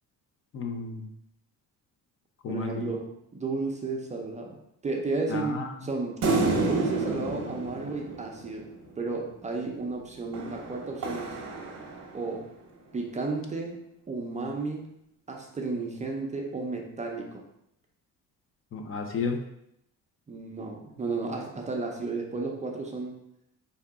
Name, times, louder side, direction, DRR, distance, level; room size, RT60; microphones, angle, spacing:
voice 1, 0.5-1.1 2.4-2.9 5.3-5.7 18.7-19.4, left 4 dB, 40° left, 4 dB, 0.4 m, -32 dB
voice 2, 2.5-4.6 4.8-6.2 6.6-8.7 9.0-11.4 12.1-12.5 12.9-13.8 14.1-14.9 15.3-17.4 20.3-23.2, right 3 dB, 20° right, 0 dB, 0.4 m, -33 dB
sound 1, 6.2-8.9 10.3-12.4, right 3 dB, 50° right, 0.8 m, -30 dB
4.7 x 2.8 x 3.5 m, 0.79 s
cardioid pair, 175°, 34 cm